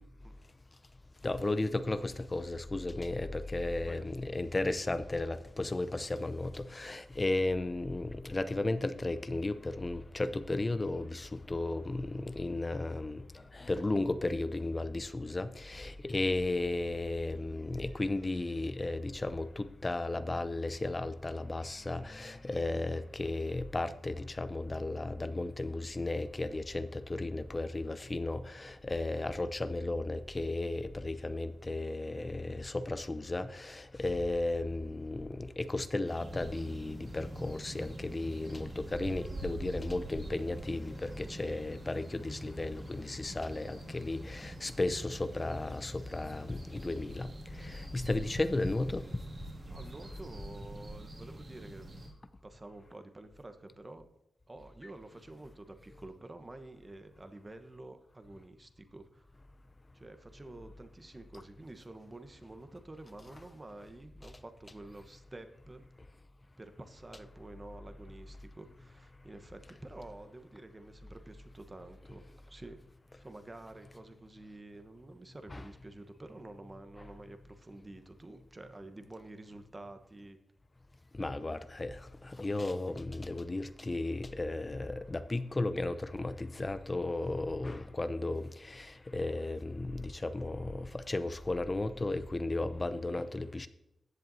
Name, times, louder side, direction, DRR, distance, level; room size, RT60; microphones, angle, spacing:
voice 1, 1.2-13.2 13.5-49.0 75.5-75.6 81.2-93.7, left 2 dB, 30° left, 0.6 m, -34 dB
sound 1, 36.0-52.1, right 1 dB, 45° right, 2.3 m, -45 dB
voice 2, 49.6-51.9 52.4-54.1 54.5-59.3 59.9-65.9 66.6-72.8 73.2-80.4 81.2-81.7, right 2 dB, 30° right, 1.1 m, -49 dB
14.5 x 7.7 x 2.7 m
cardioid pair, 55°, 0 cm